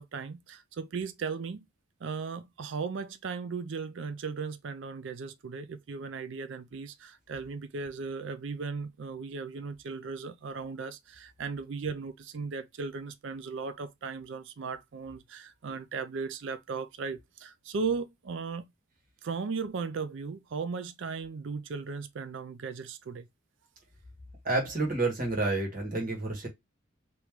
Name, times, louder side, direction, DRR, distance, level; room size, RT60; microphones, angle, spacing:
voice 1, 0.0-1.7 2.0-18.7 19.2-23.3, right 5 dB, 60° right, 0.4 m, -37 dB
voice 2, 24.4-26.5, right 2 dB, 40° right, 1.7 m, -29 dB
3.5 x 3.0 x 3.1 m
head